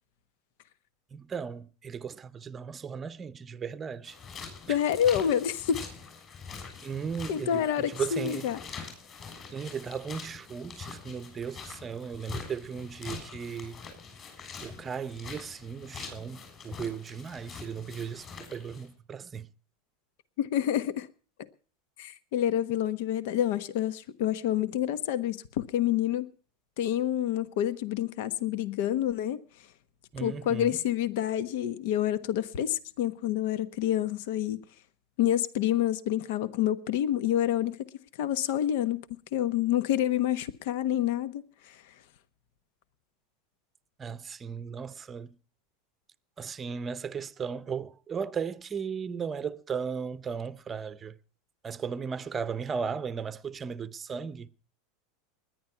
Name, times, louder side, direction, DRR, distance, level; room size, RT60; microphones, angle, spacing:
voice 1, 1.1-4.2 4.7-4.8 6.8-8.5 9.5-13.8 14.6-19.5 30.1-30.8 44.0-45.4 46.4-51.2 51.6-54.5, right 6 dB, 20° right, 0.8 m, -36 dB
sound 1, 4.0-18.9, left 5 dB, 30° left, 7.1 m, -44 dB
voice 2, 4.7-5.8 7.3-8.6 20.4-21.1 22.0-26.3 26.8-29.4 30.2-34.6 35.2-37.9 38.2-39.0 39.3-41.8, left 11 dB, 65° left, 1.1 m, -28 dB
20.5 x 10.5 x 5.7 m
supercardioid pair, 150°, 0 cm